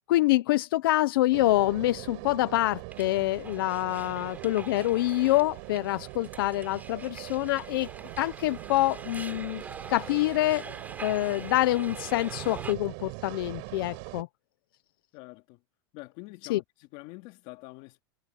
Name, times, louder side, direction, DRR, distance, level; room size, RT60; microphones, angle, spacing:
voice 1, 0.1-7.9 8.2-9.6 9.9-10.7 11.0-14.3 16.5-16.6, left 17 dB, 75° left, 0.9 m, -26 dB
sound 1, 1.3-14.2, right 33 dB, 60° right, 5.9 m, -42 dB
sound 2, 2.9-12.7, right 4 dB, 15° right, 4.2 m, -45 dB
voice 2, 15.1-15.6 15.9-18.0, left 22 dB, 55° left, 2.7 m, -46 dB
supercardioid pair, 135°, 12 cm